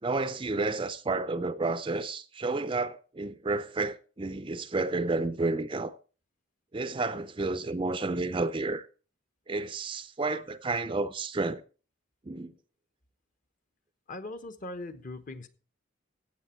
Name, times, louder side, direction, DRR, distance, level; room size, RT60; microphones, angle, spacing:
voice 1, 0.0-5.9 6.7-8.9 9.5-11.6 12.3-12.5, right 3 dB, 25° right, 0.5 m, -31 dB
voice 2, 14.1-15.5, left 2 dB, 40° left, 1.0 m, -40 dB
14.5 x 8.5 x 4.4 m
head